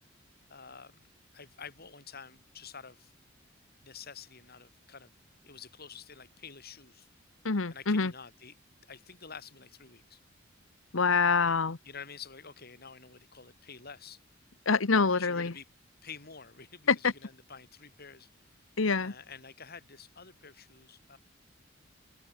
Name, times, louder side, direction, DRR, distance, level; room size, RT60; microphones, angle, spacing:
voice 1, 0.5-1.1 1.3-3.1 3.8-5.1 5.4-7.1 7.7-8.6 8.9-10.2 11.9-14.2 15.1-15.7 16.0-21.2, left 6 dB, 50° left, 5.5 m, -49 dB
voice 2, 7.4-8.1 10.9-11.8 14.7-15.5 16.9-17.1 18.8-19.1, left 4 dB, 85° left, 1.1 m, -26 dB
head